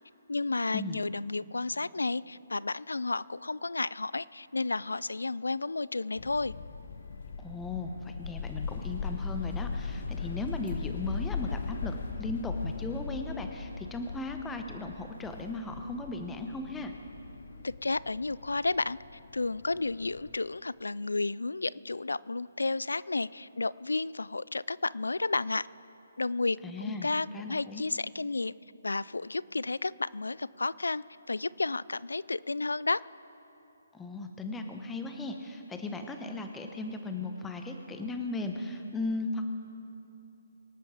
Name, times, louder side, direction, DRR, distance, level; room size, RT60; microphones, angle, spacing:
voice 1, 0.3-6.5 17.6-19.0 19.3-25.7 26.2-28.5 28.8-33.0, left 3 dB, 85° left, 20 dB, 0.3 m, -32 dB
sound 1, 6.2-20.4, left 5 dB, 55° left, 0.9 m, -39 dB
voice 2, 7.4-16.9 26.6-27.8 33.9-39.5, left 2 dB, 10° left, 5 dB, 1.0 m, -37 dB
24.0 x 8.9 x 4.9 m, 2.9 s
figure-of-eight pair, 145°, 0 cm